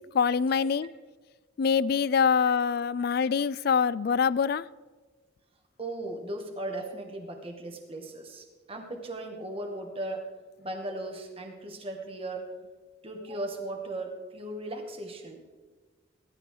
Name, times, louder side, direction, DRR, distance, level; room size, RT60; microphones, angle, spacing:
voice 1, 0.1-0.9 1.6-4.6, left 6 dB, 50° left, 20 dB, 0.3 m, -24 dB
voice 2, 2.6-3.1 5.8-10.3 10.6-12.5 13.0-15.4, right 1 dB, 30° right, 3 dB, 1.9 m, -37 dB
17.0 x 13.0 x 3.8 m, 1.4 s
head